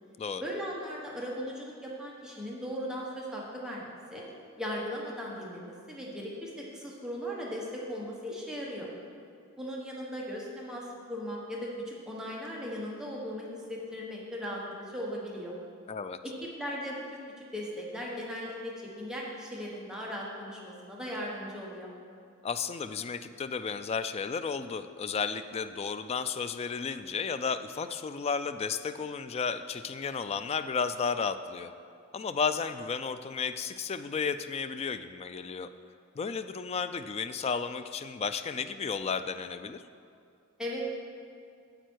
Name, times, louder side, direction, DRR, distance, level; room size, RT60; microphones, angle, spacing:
voice 1, 0.4-4.2 4.6-8.9 9.6-10.8 11.1-15.6 16.2-21.9 40.6-40.8, equal, 5° right, -4 dB, 1.2 m, -38 dB
voice 2, 15.9-16.2 22.4-31.7 32.1-35.7 36.2-39.8, left 5 dB, 30° left, 11 dB, 0.3 m, -33 dB
9.1 x 7.8 x 4.6 m, 2.4 s
head